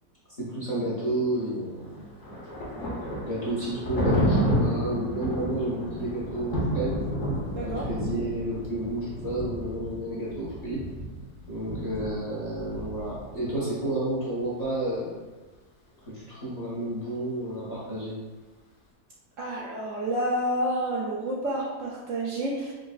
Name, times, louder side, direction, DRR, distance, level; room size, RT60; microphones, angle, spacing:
voice 1, 0.4-2.0 3.2-7.0 7.6-10.8 11.5-15.1 16.1-18.2, right 1 dB, 30° left, -9 dB, 0.9 m, -31 dB
Thunder, 1.8-13.6, equal, 55° left, 1.1 m, -31 dB
voice 2, 7.5-7.9 19.4-22.7, right 1 dB, 65° right, -4 dB, 0.8 m, -29 dB
4.9 x 2.3 x 2.3 m, 1.2 s
omnidirectional pair, 1.6 m